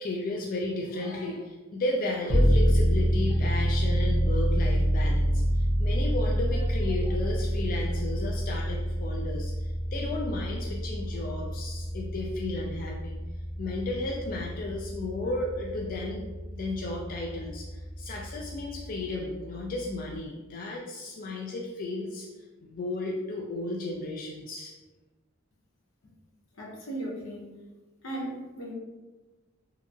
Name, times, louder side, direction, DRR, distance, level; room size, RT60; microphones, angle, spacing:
voice 1, 0.0-13.2 13.6-16.3 16.5-22.3 22.6-24.7, left 2 dB, 45° left, -2 dB, 0.3 m, -34 dB
sound 1, 2.3-18.6, equal, 5° right, 0.7 m, -28 dB
voice 2, 26.6-27.5 28.0-28.7, right 1 dB, 80° left, -3 dB, 0.7 m, -36 dB
2.8 x 2.4 x 2.4 m, 1.2 s
head